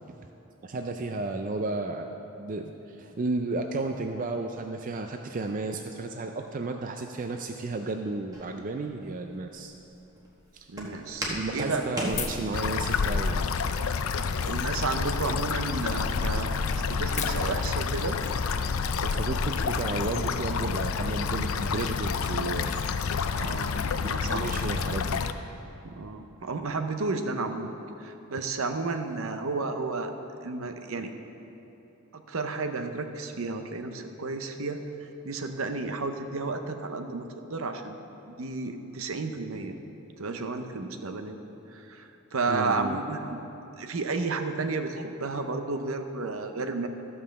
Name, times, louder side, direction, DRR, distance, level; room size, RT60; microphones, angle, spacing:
voice 1, 0.6-9.7 10.5-10.7 11.3-13.5 19.0-22.7 24.3-25.2 42.5-43.0, right 3 dB, 40° right, 4 dB, 0.4 m, -33 dB
Walk footsteps, 8.3-12.9, equal, 15° right, 1.3 m, -37 dB
voice 2, 10.7-12.1 14.4-16.7 17.0-18.2 23.3-24.6 25.8-27.7 28.0-30.1 30.4-31.1 32.1-38.0 38.3-39.8 40.2-41.4 41.7-43.4 43.8-46.9, right 3 dB, 70° right, 6 dB, 0.7 m, -32 dB
sound 1, 12.0-13.6 14.1-14.8 15.3-15.4 15.6-15.7 16.0-16.1 16.3-18.3, left 5 dB, 35° left, 0.7 m, -38 dB
sound 2, 12.5-25.3, left 5 dB, 70° left, 0.4 m, -29 dB
13.5 x 5.5 x 6.6 m, 3.0 s
head